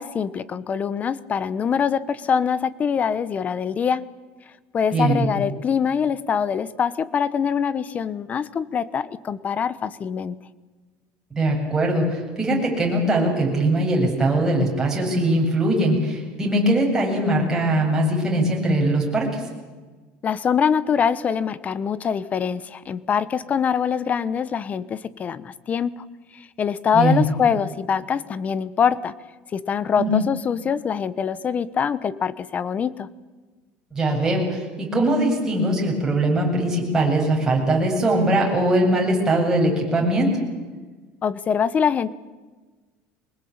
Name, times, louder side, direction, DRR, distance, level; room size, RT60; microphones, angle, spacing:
voice 1, 0.0-4.1 4.7-10.4 20.2-26.1 26.3-29.1 29.5-33.1 41.2-42.1, left 7 dB, 30° left, 17 dB, 1.0 m, -24 dB
voice 2, 4.9-5.2 11.3-19.4 26.9-27.2 30.0-30.1 33.9-40.3, right 1 dB, 10° right, -1 dB, 7.8 m, -21 dB
23.5 x 20.5 x 8.8 m, 1.3 s
cardioid pair, 140°, 5 cm